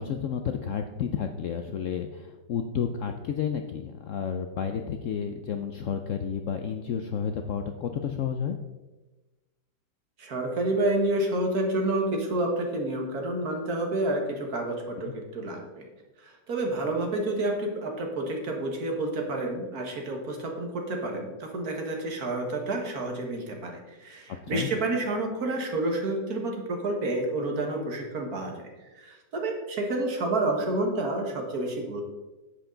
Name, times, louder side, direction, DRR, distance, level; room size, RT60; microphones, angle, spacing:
voice 1, 0.0-8.6 15.0-15.1 24.4-24.7, left 7 dB, 65° left, 6 dB, 0.8 m, -31 dB
voice 2, 10.2-15.9 16.2-32.0, right 2 dB, 60° right, 2 dB, 2.0 m, -29 dB
10.0 x 8.1 x 3.8 m, 1.2 s
omnidirectional pair, 1.9 m